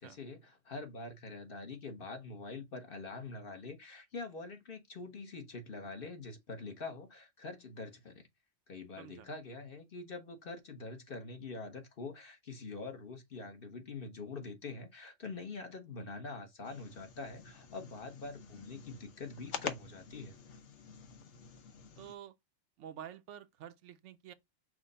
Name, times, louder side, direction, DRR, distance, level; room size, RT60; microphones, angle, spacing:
voice 1, 0.0-8.2 8.7-20.4, left 3 dB, 50° left, 1.1 m, -45 dB
voice 2, 9.0-9.3 22.0-22.3 22.8-24.3, right 10 dB, 80° right, 0.9 m, -49 dB
sound 1, 16.6-22.2, left 6 dB, 75° left, 1.1 m, -47 dB
6.2 x 2.1 x 3.8 m
omnidirectional pair, 1.2 m